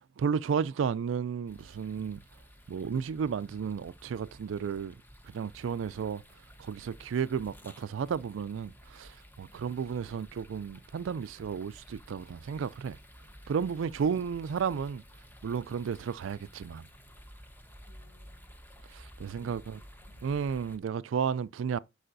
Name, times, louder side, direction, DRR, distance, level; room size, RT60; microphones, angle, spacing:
voice 1, 0.2-2.2 2.7-4.9 5.3-6.2 6.6-13.0 13.5-15.0 15.4-16.8 18.9-19.8 20.2-21.8, right 6 dB, 75° right, 0.3 m, -33 dB
sound 1, 1.5-20.8, equal, 10° left, 1.0 m, -53 dB
voice 2, 9.5-9.8 17.8-18.5 19.3-20.4, left 5 dB, 60° left, 4.0 m, -63 dB
11.0 x 4.9 x 2.6 m
head